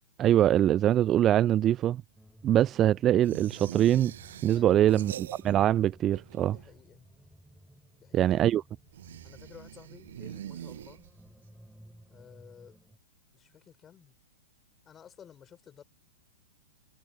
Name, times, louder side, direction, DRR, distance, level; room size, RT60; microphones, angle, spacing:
voice 1, 0.2-2.0 2.4-4.1 4.4-6.6 8.1-8.6, right 11 dB, 25° right, 0.4 m, -23 dB
sound 1, 2.1-13.0, equal, ahead, 4.6 m, -56 dB
sound 2, 3.2-5.8 6.0-6.9 8.9-11.4, right 11 dB, 55° right, 1.4 m, -43 dB
voice 2, 4.5-5.2 6.5-7.1 8.0-8.5 9.2-11.0 12.1-12.8 13.3-14.2 14.9-15.8, left 8 dB, 20° left, 7.1 m, -53 dB
figure-of-eight pair, 105°, 0 cm